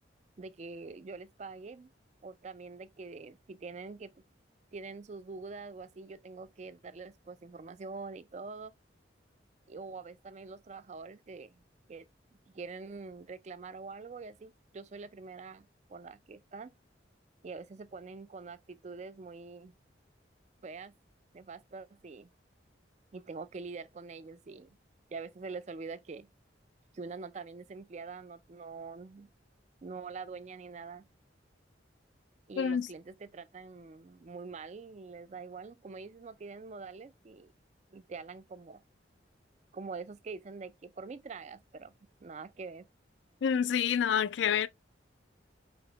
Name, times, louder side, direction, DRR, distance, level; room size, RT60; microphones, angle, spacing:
voice 1, 0.4-1.9 2.2-4.2 4.7-8.7 9.7-11.6 11.9-12.1 12.5-16.7 17.4-19.7 20.6-20.9 21.3-22.3 23.1-24.8 25.1-26.3 26.9-29.3 29.8-31.0 32.5-37.5 37.9-38.8 39.7-41.9 42.2-42.9, right 4 dB, 35° right, 0.4 m, -45 dB
voice 2, 32.6-32.9 43.4-44.7, left 8 dB, 75° left, 0.3 m, -28 dB
5.1 x 2.9 x 2.9 m
head